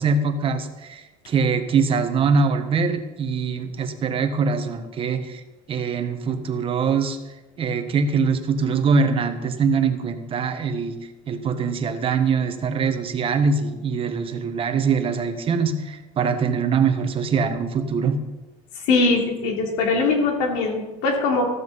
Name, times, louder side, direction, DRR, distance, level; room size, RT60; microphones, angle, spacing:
voice 1, 0.0-5.4 5.7-7.2 7.6-11.0 11.3-18.2, right 5 dB, 35° right, 7 dB, 1.4 m, -23 dB
voice 2, 18.8-21.5, left 3 dB, 85° left, 1 dB, 3.1 m, -21 dB
14.5 x 13.5 x 4.1 m, 1.1 s
cardioid pair, 135°, 16 cm